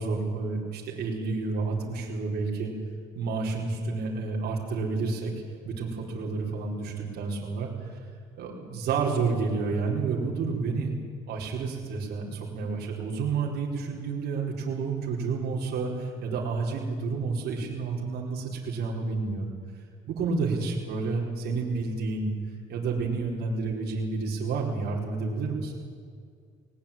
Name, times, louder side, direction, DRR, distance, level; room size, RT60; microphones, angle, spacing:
voice 1, 0.0-2.7 3.1-5.3 5.6-7.9 8.4-11.0 11.3-19.5 20.1-22.3 22.7-25.7, right 4 dB, 70° right, -2 dB, 4.6 m, -30 dB
20.0 x 19.5 x 8.8 m, 2.2 s
cardioid pair, 110°, 17 cm